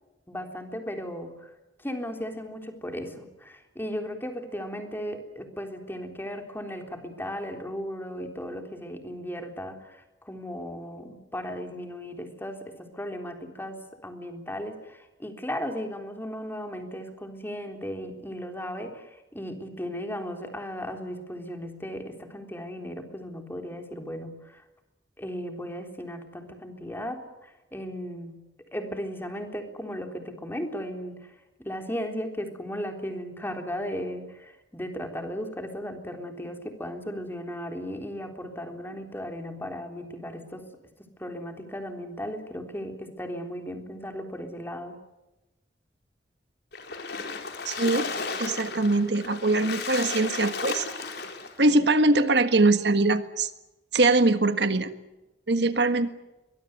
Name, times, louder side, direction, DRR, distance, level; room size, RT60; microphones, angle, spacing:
voice 1, 0.3-1.5 1.8-24.6 25.2-28.4 28.7-31.2 31.6-40.7 41.2-45.0 51.7-51.8, equal, 15° left, 5 dB, 3.6 m, -36 dB
Splash splatter, 46.7-51.6, left 4 dB, 65° left, 4.2 m, -34 dB
voice 2, 47.6-48.1 48.4-50.8 51.6-53.5 53.9-54.9 55.5-56.1, right 2 dB, 70° right, 10 dB, 1.6 m, -22 dB
23.0 x 21.0 x 9.6 m, 1.0 s
head